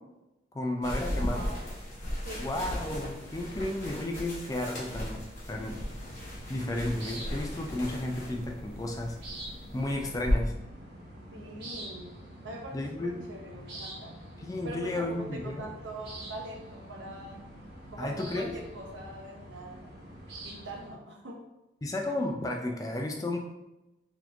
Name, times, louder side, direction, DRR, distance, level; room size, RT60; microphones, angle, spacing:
voice 1, 0.5-1.5 2.4-5.2 5.5-5.8 6.5-9.2 9.7-10.6 12.7-13.2 14.4-15.7 18.0-18.5 21.8-23.4, left 1 dB, 20° left, 2 dB, 0.3 m, -33 dB
sound 1, 0.8-10.3, left 1 dB, 40° left, 1.3 m, -36 dB
voice 2, 1.2-1.6 2.2-2.7 11.3-12.1 12.4-14.2 14.6-17.4 17.9-19.9 20.4-21.4, right 1 dB, 80° right, 0 dB, 0.8 m, -43 dB
sound 2, 5.4-20.9, right 1 dB, 55° right, 1.5 m, -46 dB
4.1 x 2.9 x 2.5 m, 0.97 s
head